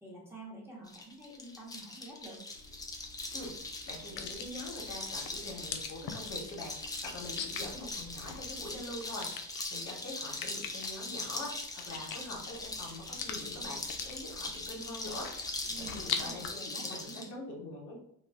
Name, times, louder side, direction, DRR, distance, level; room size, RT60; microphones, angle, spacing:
voice 1, 0.0-2.4 15.7-17.3, right 2 dB, 5° right, -6 dB, 1.1 m, -48 dB
sound 1, 0.9-17.3, left 2 dB, 10° left, 0.4 m, -41 dB
sound 2, 2.5-16.5, left 7 dB, 75° left, 0.5 m, -44 dB
voice 2, 3.9-6.7 7.0-9.3 9.7-15.3 15.9-17.9, left 1 dB, 50° left, -2 dB, 1.1 m, -44 dB
2.4 x 2.1 x 3.4 m, 0.71 s
supercardioid pair, 90°, 36 cm